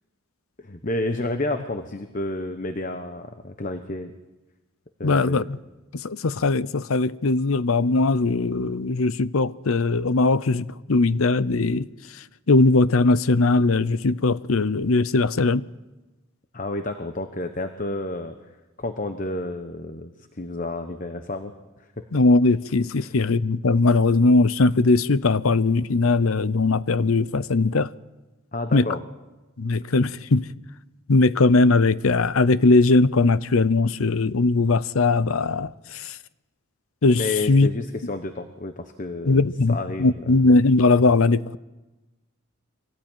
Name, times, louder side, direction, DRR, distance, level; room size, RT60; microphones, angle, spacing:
voice 1, 0.6-4.1 5.0-5.5 16.5-18.4 18.8-22.1 23.0-23.1 28.5-29.0 37.2-40.3, left 2 dB, 40° left, 1.1 m, -30 dB
voice 2, 5.0-5.6 5.9-11.9 12.5-15.7 22.1-27.9 28.7-28.9 29.6-30.5 31.1-36.2 37.0-37.7 39.3-41.6, left 3 dB, 80° left, 0.7 m, -20 dB
24.5 x 18.0 x 9.2 m
head